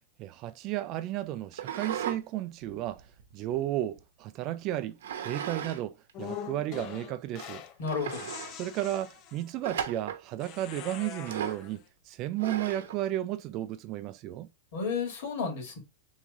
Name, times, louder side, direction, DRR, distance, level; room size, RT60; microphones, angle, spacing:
voice 1, 0.2-3.0 3.3-7.6 8.6-14.5, right 13 dB, 35° right, 0.4 m, -33 dB
sound 1, 1.5-2.2 2.6-4.0 5.0-5.8 6.1-6.2 6.9-7.0 7.4-7.5 7.8-8.5 9.6-10.2 11.2-11.7 12.4-13.0, right 8 dB, 85° right, 0.8 m, -36 dB
sound 2, 6.1-7.8 8.1-9.6 10.4-11.8, left 9 dB, 35° left, 0.6 m, -43 dB
voice 2, 7.8-8.3 14.7-15.8, left 5 dB, 60° left, 2.1 m, -32 dB
3.6 x 3.1 x 3.5 m
supercardioid pair, 150°, 0 cm